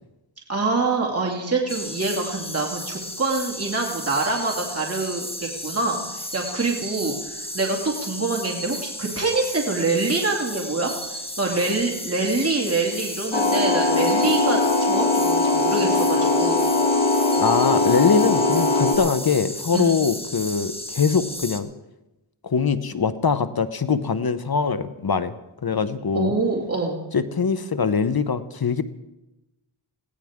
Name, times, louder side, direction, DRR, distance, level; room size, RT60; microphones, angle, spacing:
voice 1, 0.5-16.6 19.7-19.9 26.1-27.0, right 3 dB, 30° right, -1 dB, 2.5 m, -25 dB
sound 1, 1.7-21.6, equal, 10° left, 1.5 m, -34 dB
sound 2, 13.3-18.9, left 3 dB, 90° left, 2.5 m, -20 dB
voice 2, 17.4-21.7 22.4-25.3 25.6-26.3 27.1-28.8, left 5 dB, 50° left, 12 dB, 1.0 m, -22 dB
21.5 x 16.5 x 3.7 m, 0.96 s
cardioid pair, 55°, 47 cm